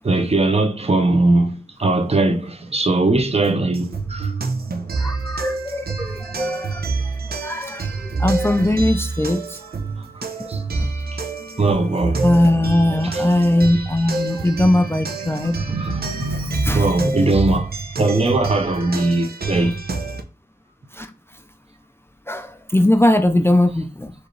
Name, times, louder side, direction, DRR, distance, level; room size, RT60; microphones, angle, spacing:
voice 1, 0.0-4.3 6.0-6.1 10.5-10.8 11.1-11.2 11.6-12.3 13.0-13.8 14.3-17.7 18.0-19.8, right 2 dB, 40° right, 0.8 m, -21 dB
sound 1, 3.7-20.2, right 3 dB, 90° right, 0.7 m, -27 dB
voice 2, 5.0-6.9 7.3-9.6 10.4-10.5 10.8-10.9 11.9-15.6 16.6-16.9 20.9-21.1 22.3-24.1, left 1 dB, 15° left, 0.4 m, -20 dB
4.5 x 3.1 x 3.2 m
wide cardioid pair, 80°, 15 cm